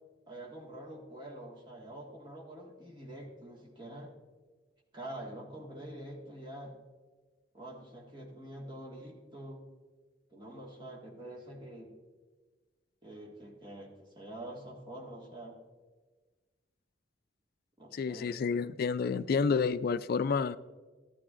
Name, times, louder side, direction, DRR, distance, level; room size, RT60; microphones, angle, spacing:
voice 1, 0.3-4.1 4.9-6.8 7.5-9.6 10.3-11.9 13.0-15.6 17.8-18.3, right 1 dB, 25° right, -1 dB, 1.8 m, -46 dB
voice 2, 17.9-20.6, left 5 dB, 55° left, 14 dB, 0.3 m, -29 dB
13.5 x 12.0 x 2.5 m, 1.3 s
head